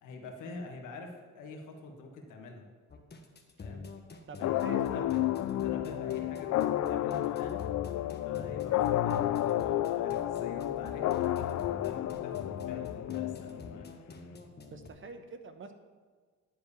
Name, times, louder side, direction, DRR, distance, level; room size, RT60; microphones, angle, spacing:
voice 1, 0.0-2.7 3.6-3.8 4.4-7.5 8.2-13.9, left 3 dB, 85° left, 3 dB, 1.5 m, -46 dB
sound 1, 2.9-14.9, left 4 dB, 35° left, 1.3 m, -46 dB
voice 2, 4.3-5.0 14.6-15.7, right 4 dB, 40° right, 8 dB, 1.0 m, -45 dB
sound 2, 4.4-13.9, left 13 dB, 65° left, 0.5 m, -31 dB
10.5 x 4.8 x 6.9 m, 1.5 s
cardioid pair, 90°, 30 cm